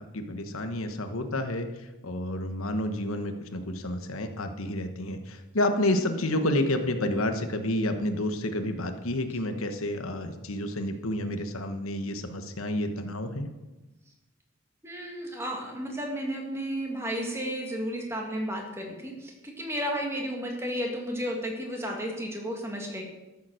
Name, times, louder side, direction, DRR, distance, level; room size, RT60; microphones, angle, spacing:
voice 1, 0.0-1.7 2.0-13.5, left 1 dB, 90° left, 7 dB, 1.2 m, -30 dB
voice 2, 14.8-23.0, equal, 10° right, 1 dB, 2.0 m, -33 dB
13.5 x 7.3 x 6.5 m, 1.1 s
head